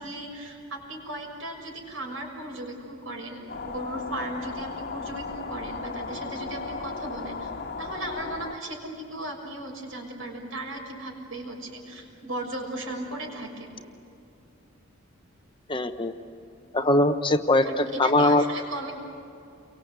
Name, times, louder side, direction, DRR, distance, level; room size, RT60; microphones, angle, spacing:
voice 1, 0.0-7.5 7.8-13.7 17.6-18.9, right 1 dB, 70° right, 2 dB, 6.7 m, -36 dB
sound 1, 3.5-8.5, left 4 dB, 50° left, 1.5 m, -36 dB
voice 2, 15.7-16.1 16.7-18.4, left 1 dB, 25° left, 8 dB, 0.9 m, -21 dB
30.0 x 24.0 x 8.2 m, 2.6 s
head